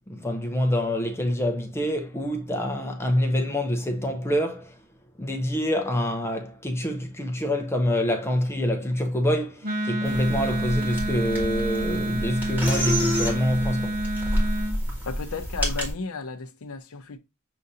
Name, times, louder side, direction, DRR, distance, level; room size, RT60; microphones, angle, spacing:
voice 1, 0.1-4.8 5.2-14.0, equal, 10° left, 0.5 m, -26 dB
Wind instrument woodwind instrument, 9.6-14.8, right 1 dB, 45° right, 1.1 m, -29 dB
sound 1, 10.1-15.9, equal, 10° right, 1.5 m, -29 dB
voice 2, 15.0-17.2, left 4 dB, 85° left, 0.6 m, -34 dB
6.5 x 2.6 x 2.6 m
head